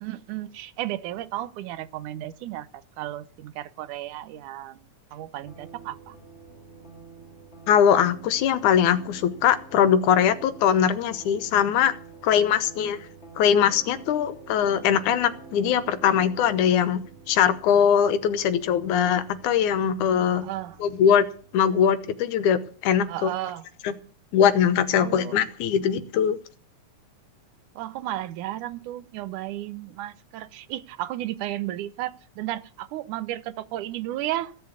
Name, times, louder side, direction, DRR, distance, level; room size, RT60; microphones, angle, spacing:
voice 1, 0.0-6.2 20.3-20.8 23.1-23.6 25.0-25.4 27.8-34.6, right 14 dB, 90° right, 2.3 m, -34 dB
sound 1, 5.4-22.2, right 4 dB, 20° left, 2.9 m, -48 dB
voice 2, 7.7-11.9 12.2-13.1 13.4-20.5 20.8-21.3 21.5-23.3 23.8-23.9 24.3-26.4, left 8 dB, 80° left, 2.5 m, -21 dB
16.0 x 7.5 x 8.2 m
omnidirectional pair, 3.4 m